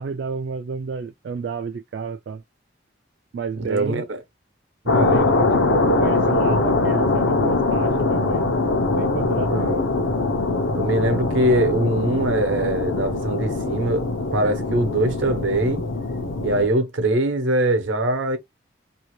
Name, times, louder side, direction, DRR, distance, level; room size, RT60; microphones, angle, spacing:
voice 1, 0.0-2.4 3.3-4.0 5.0-8.5 9.0-9.9, right 5 dB, 60° right, 0.3 m, -30 dB
voice 2, 3.6-4.0 4.8-5.2 5.7-5.8 9.4-9.8 10.7-15.8 16.4-18.4, right 1 dB, 80° right, 0.8 m, -22 dB
sound 1, 4.9-16.7, left 3 dB, 90° left, 0.7 m, -22 dB
2.8 x 2.7 x 3.0 m
head